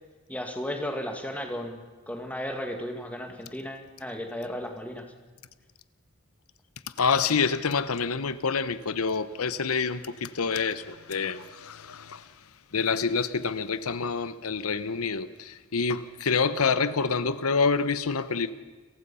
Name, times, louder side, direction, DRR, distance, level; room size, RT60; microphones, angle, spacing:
voice 1, 0.3-5.1, equal, 5° left, 1.9 m, -35 dB
voice 2, 7.0-12.3 12.7-18.5, left 5 dB, 90° left, 0.9 m, -27 dB
29.5 x 15.5 x 5.6 m
head